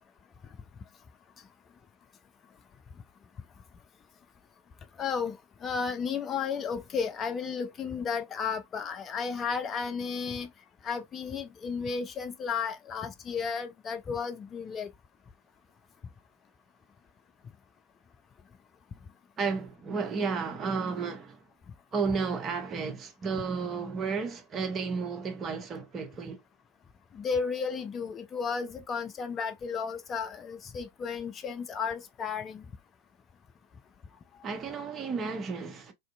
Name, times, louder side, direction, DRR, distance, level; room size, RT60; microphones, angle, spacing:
voice 1, 5.0-5.4 5.6-10.5 10.8-14.9 27.1-32.6, left 6 dB, 25° left, 0.4 m, -33 dB
voice 2, 19.4-21.4 21.9-26.4 34.4-35.9, right 5 dB, 25° right, 0.6 m, -32 dB
2.5 x 2.5 x 2.3 m
figure-of-eight pair, 90°, 0 cm